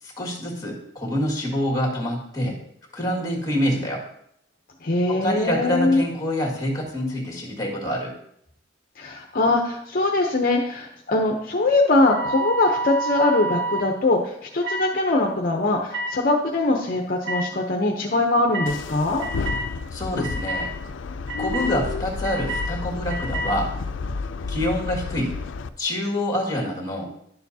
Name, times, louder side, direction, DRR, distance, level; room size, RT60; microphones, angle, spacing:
voice 1, 0.0-2.6 2.9-4.0 5.1-8.2 19.9-20.7 21.4-23.8 24.5-25.4 25.8-27.2, equal, 20° left, 0 dB, 1.9 m, -26 dB
voice 2, 4.8-6.0 9.0-19.2, left 2 dB, 50° left, 1 dB, 0.7 m, -22 dB
sound 1, 12.0-13.9 14.6-14.9 15.9-16.1 17.2-17.4 18.5-18.7 19.2-19.7 20.2-20.7 21.3-21.7 22.2-22.7 23.1-23.5, right 2 dB, 70° right, 1.2 m, -28 dB
sound 2, 18.7-25.7, left 4 dB, 85° left, 0.5 m, -31 dB
11.0 x 6.9 x 2.8 m, 0.73 s
head